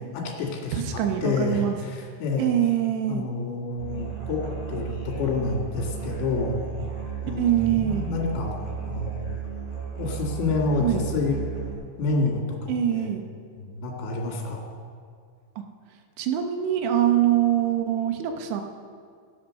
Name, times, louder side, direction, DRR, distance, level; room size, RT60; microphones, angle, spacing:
voice 1, 0.0-2.5 3.1-6.6 7.2-8.6 8.8-9.1 10.0-11.4 12.0-13.1 13.6-14.7, left 3 dB, 70° left, -1 dB, 4.2 m, -28 dB
voice 2, 0.7-1.8 2.4-3.3 7.4-8.1 10.8-11.1 12.7-13.2 16.2-18.6, right 11 dB, 75° right, 5 dB, 3.1 m, -24 dB
Musical instrument, 3.8-11.7, right 8 dB, 15° right, 2.7 m, -34 dB
15.0 x 8.7 x 6.3 m, 2.2 s
omnidirectional pair, 5.6 m